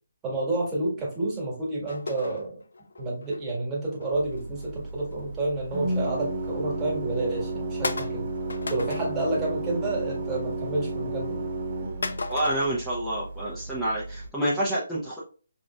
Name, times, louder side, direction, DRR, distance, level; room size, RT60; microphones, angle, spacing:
voice 1, 0.2-2.6 3.0-8.2 8.7-11.5, right 2 dB, 15° right, -4 dB, 1.4 m, -29 dB
sound 1, 1.9-3.4 4.0-5.3 5.7-5.9 6.4-6.5 7.1-7.2 7.8-9.3 9.7-10.1 10.3-11.0 12.0-12.7, left 3 dB, 70° left, 0.5 m, -36 dB
Organ, 4.1-14.3, right 2 dB, 45° right, 1.1 m, -33 dB
voice 2, 12.3-15.2, right 1 dB, ahead, -10 dB, 0.7 m, -28 dB
5.0 x 2.6 x 2.3 m, 0.38 s
figure-of-eight pair, 145°, 0 cm